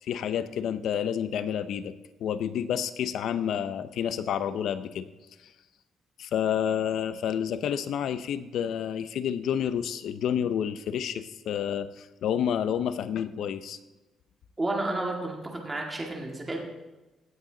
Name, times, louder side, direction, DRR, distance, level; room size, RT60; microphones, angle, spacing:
voice 1, 0.0-5.1 5.4-5.5 6.2-13.8, left 9 dB, 70° left, 12 dB, 0.7 m, -29 dB
voice 2, 14.6-16.6, right 2 dB, 15° right, 0 dB, 1.9 m, -31 dB
16.0 x 9.2 x 3.9 m, 1.1 s
cardioid pair, 150°, 0 cm